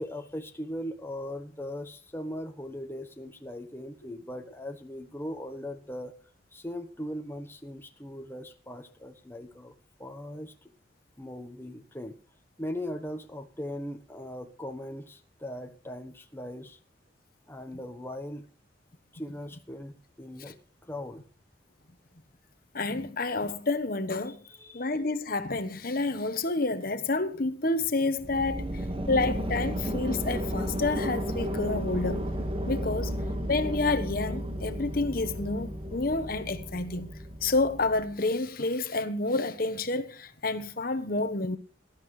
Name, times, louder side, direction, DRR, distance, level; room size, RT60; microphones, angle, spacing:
voice 1, 0.0-6.1 6.5-9.7 10.0-10.5 11.2-12.1 12.6-16.8 17.5-18.5 19.1-20.6 20.9-21.2 24.3-24.9, left 1 dB, 10° left, 1.1 m, -39 dB
voice 2, 22.7-24.4 24.7-28.6 29.1-32.3 32.7-33.1 33.5-37.1 37.4-41.6, left 3 dB, 50° left, 1.1 m, -29 dB
sound 1, 28.2-38.1, equal, 30° right, 1.6 m, -33 dB
18.5 x 12.5 x 3.2 m
head